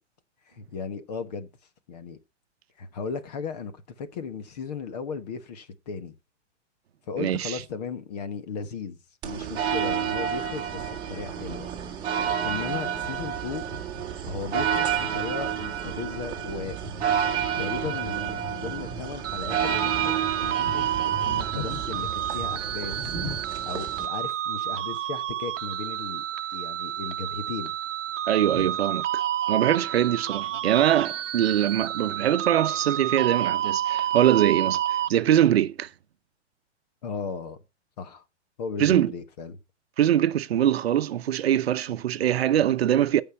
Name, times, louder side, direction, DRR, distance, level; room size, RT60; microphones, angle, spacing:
voice 1, 0.5-1.5 1.9-2.2 2.8-6.1 7.1-9.0 9.2-11.7 12.4-13.6 14.2-16.8 17.6-23.1 23.7-26.2 26.5-27.7 28.5-28.7 37.0-37.6 38.0-38.2 38.6-39.6, left 5 dB, 35° left, 1.2 m, -36 dB
voice 2, 7.2-7.6 28.3-29.2 29.5-35.9 38.8-39.1 40.0-43.2, right 11 dB, 55° right, 0.9 m, -23 dB
sound 1, 9.2-24.1, right 8 dB, 15° right, 1.8 m, -30 dB
sound 2, 19.2-35.1, right 11 dB, 85° right, 0.8 m, -29 dB
15.5 x 5.7 x 4.3 m
hypercardioid pair, 180°, 36 cm